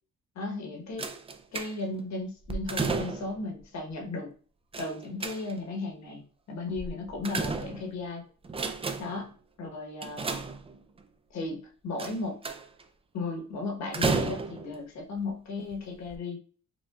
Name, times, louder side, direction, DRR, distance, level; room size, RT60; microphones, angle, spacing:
voice 1, 0.3-1.1 1.5-4.3 4.8-8.2 9.0-9.3 9.6-10.4 11.3-12.4 13.1-16.4, left 3 dB, 65° left, 1 dB, 1.3 m, -35 dB
sound 1, 1.0-2.0 2.5-3.4 4.7-5.8 6.8-8.1 8.4-9.3 10.0-11.0 12.0-12.8 13.9-14.8 15.6-15.7 16.1-16.2, right 4 dB, 20° right, 0.4 m, -32 dB
5.1 x 2.3 x 2.4 m, 0.41 s
cardioid pair, 90°, 30 cm